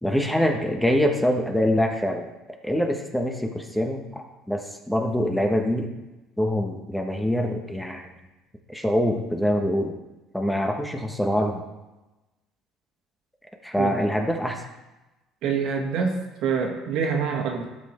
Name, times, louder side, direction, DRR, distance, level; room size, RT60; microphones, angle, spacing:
voice 1, 0.0-2.2 2.6-5.9 6.4-8.1 8.7-9.9 10.3-11.6 13.6-14.6, equal, 5° left, 3 dB, 1.2 m, -24 dB
voice 2, 15.4-16.1 16.4-17.7, right 6 dB, 70° right, 2 dB, 1.9 m, -25 dB
12.5 x 6.1 x 4.4 m, 1.0 s
cardioid pair, 105°, 0 cm